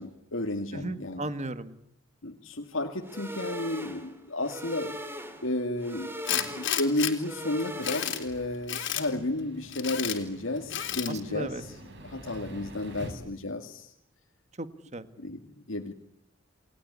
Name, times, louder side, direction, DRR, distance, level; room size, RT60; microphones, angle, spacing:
voice 1, 0.0-1.3 2.2-5.0 5.4-11.8 12.0-13.9 15.2-15.9, left 2 dB, 80° left, 3 dB, 2.3 m, -32 dB
voice 2, 0.7-1.7 11.1-11.6 14.6-15.1, right 2 dB, 35° right, 11 dB, 1.8 m, -36 dB
sound 1, 3.0-8.4, equal, 10° right, 3.7 m, -40 dB
Tools, 6.2-7.1 7.6-8.2 8.7-9.1 9.7-10.2 10.7-11.1, left 10 dB, 65° left, 3.5 m, -31 dB
sound 2, 7.0-13.1, right 1 dB, 60° right, 6.8 m, -48 dB
29.5 x 19.5 x 9.9 m, 0.72 s
head